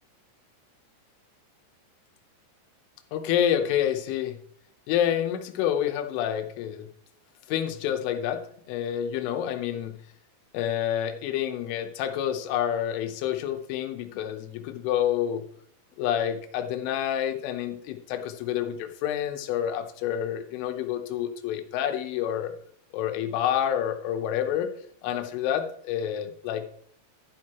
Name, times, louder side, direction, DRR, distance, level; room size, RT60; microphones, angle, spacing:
voice 1, 3.1-4.4 4.9-6.9 7.5-10.0 10.5-15.4 16.0-22.5 22.9-24.7 25.0-26.7, left 10 dB, 85° left, 7 dB, 3.4 m, -28 dB
11.5 x 9.3 x 2.9 m, 0.65 s
omnidirectional pair, 5.6 m